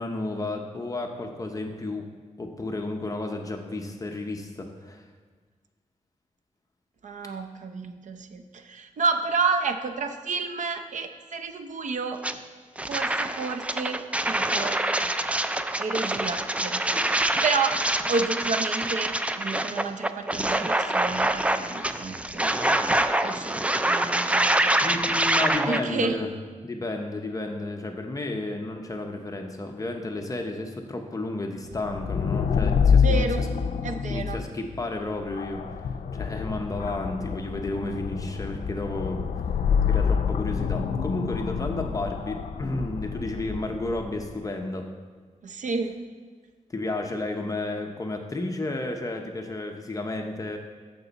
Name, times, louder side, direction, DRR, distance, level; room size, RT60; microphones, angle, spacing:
voice 1, 0.0-2.1 2.4-5.1 24.8-26.3 26.6-33.5 34.1-39.5 39.9-44.9 46.7-50.6, left 2 dB, 25° left, 3 dB, 0.7 m, -32 dB
voice 2, 7.0-12.2 12.8-14.8 15.8-17.8 18.1-22.7 23.2-23.6 23.9-24.8 25.7-26.2 33.0-33.4 33.8-34.4 45.4-46.0, right 4 dB, 70° right, 7 dB, 0.7 m, -30 dB
sound 1, 12.2-12.3 12.8-25.8, right 1 dB, 10° right, 0.3 m, -25 dB
sound 2, 31.7-44.3, left 6 dB, 75° left, 0.5 m, -27 dB
13.5 x 6.0 x 4.0 m, 1.5 s
wide cardioid pair, 140°, 13 cm